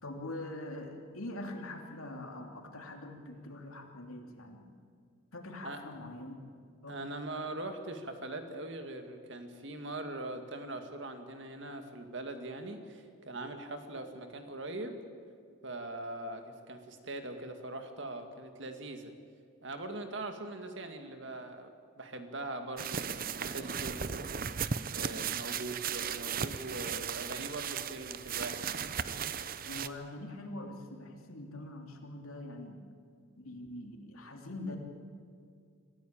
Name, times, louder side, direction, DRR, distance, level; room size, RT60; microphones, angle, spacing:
voice 1, 0.0-4.8 5.3-6.4 6.8-7.0 29.6-32.8 33.4-34.8, left 1 dB, 85° left, 2 dB, 3.1 m, -43 dB
voice 2, 6.9-15.0 15.6-19.1 19.6-24.3 24.9-28.9, right 2 dB, 60° right, 6 dB, 2.1 m, -42 dB
sound 1, 22.8-29.9, right 7 dB, 45° right, 0.7 m, -36 dB
26.0 x 15.5 x 8.8 m, 2.2 s
head